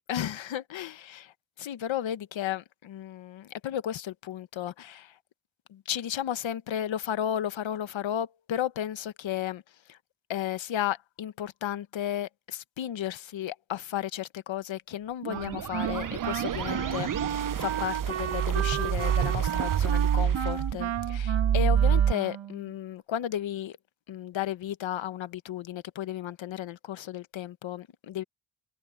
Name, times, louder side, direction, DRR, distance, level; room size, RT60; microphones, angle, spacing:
voice 1, 0.1-5.2 5.7-9.6 9.9-10.0 10.3-23.8 24.1-28.2, left 11 dB, 85° left, 1.2 m, -34 dB
sound 1, 15.2-22.1, right 9 dB, 45° right, 0.8 m, -27 dB
Wind instrument woodwind instrument, 15.3-22.7, right 10 dB, 85° right, 2.0 m, -34 dB
cardioid pair, 65°, 45 cm